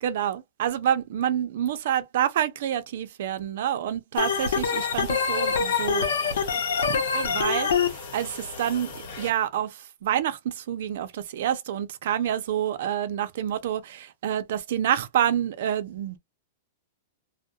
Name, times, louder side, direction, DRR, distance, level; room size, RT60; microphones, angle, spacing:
voice 1, 0.0-6.1 6.8-16.2, right 10 dB, 55° right, 0.5 m, -28 dB
sound 1, 4.1-9.3, left 5 dB, 50° left, 1.2 m, -39 dB
Organ, 4.2-7.9, left 6 dB, 85° left, 0.7 m, -25 dB
2.2 x 2.1 x 2.6 m
supercardioid pair, 165°, 0 cm